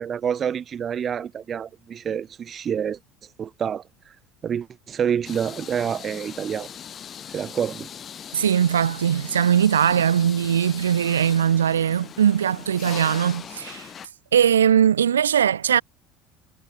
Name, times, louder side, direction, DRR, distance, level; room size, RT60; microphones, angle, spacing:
voice 1, 0.0-3.0 3.4-3.8 4.4-6.7 7.3-7.9, right 8 dB, 35° right, 1.4 m, -27 dB
sound 1, 5.2-14.1, left 8 dB, 40° left, 5.0 m, -39 dB
voice 2, 8.3-13.9 14.3-15.8, right 9 dB, 80° right, 0.5 m, -20 dB
figure-of-eight pair, 70°, 0 cm